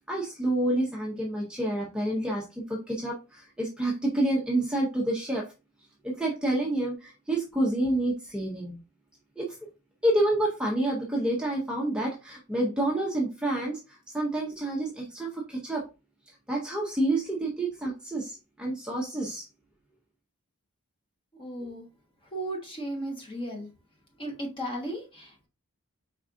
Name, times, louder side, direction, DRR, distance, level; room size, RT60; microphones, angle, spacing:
voice 1, 0.0-5.5 6.0-8.8 9.4-9.5 10.0-15.9 16.3-19.4, right 1 dB, 5° right, 0.6 m, -28 dB
voice 2, 21.4-21.8 22.3-23.7 24.2-25.5, right 1 dB, 25° left, 1.1 m, -35 dB
4.6 x 3.5 x 2.5 m
head